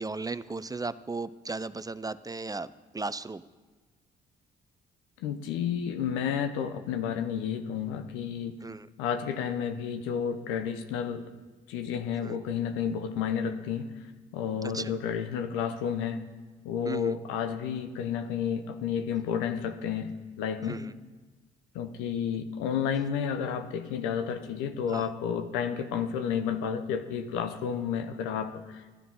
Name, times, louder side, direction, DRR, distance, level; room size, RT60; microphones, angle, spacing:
voice 1, 0.0-2.7 2.9-3.4 8.6-8.9 12.2-12.4 14.6-14.9 16.8-17.2 20.7-20.9 24.9-25.1, right 3 dB, 20° right, 15 dB, 0.5 m, -36 dB
voice 2, 5.2-8.6 9.0-11.3 11.7-13.9 14.3-16.2 16.6-20.8 21.7-28.9, left 7 dB, 85° left, 9 dB, 0.8 m, -31 dB
13.0 x 9.2 x 5.5 m, 1.3 s
supercardioid pair, 50°, 20 cm